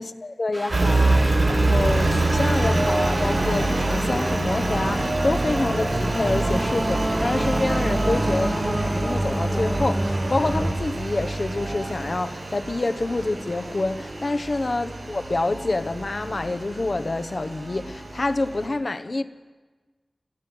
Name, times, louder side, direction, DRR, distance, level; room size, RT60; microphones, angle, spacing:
voice 1, 0.0-19.2, left 2 dB, 55° left, 1.1 m, -27 dB
sound 1, 0.5-10.7, right 1 dB, 20° right, 1.4 m, -28 dB
Engine, 0.7-18.6, right 2 dB, 85° right, 6.6 m, -26 dB
26.0 x 15.5 x 7.9 m
wide cardioid pair, 75°, 0 cm